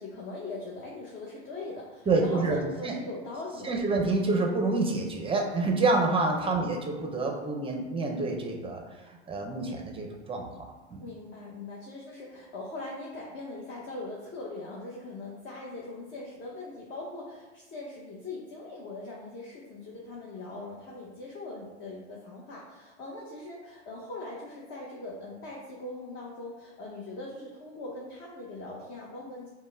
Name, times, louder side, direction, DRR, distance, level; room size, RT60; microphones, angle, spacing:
voice 1, 0.0-3.8 6.5-6.7 11.0-29.5, left 2 dB, 35° left, -4 dB, 0.9 m, -41 dB
voice 2, 2.1-3.0 3.6-10.7 10.9-11.0, right 3 dB, 15° right, 1 dB, 0.6 m, -28 dB
5.1 x 2.2 x 3.3 m, 1.2 s
hypercardioid pair, 95°, 33 cm